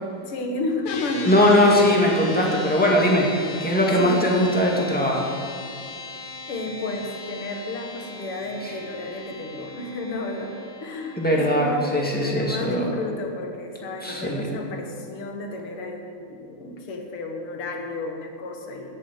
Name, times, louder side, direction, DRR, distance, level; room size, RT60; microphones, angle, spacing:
voice 1, 0.2-1.9 4.0-4.4 6.5-10.6 10.8-19.0, left 2 dB, 90° left, 3 dB, 2.3 m, -32 dB
sound 1, 0.9-11.7, left 3 dB, 65° left, 1.9 m, -38 dB
voice 2, 1.3-3.3 3.6-5.2 11.2-12.9 14.0-14.5, left 1 dB, 5° left, -3 dB, 1.8 m, -20 dB
10.0 x 9.5 x 7.8 m, 2.4 s
omnidirectional pair, 2.4 m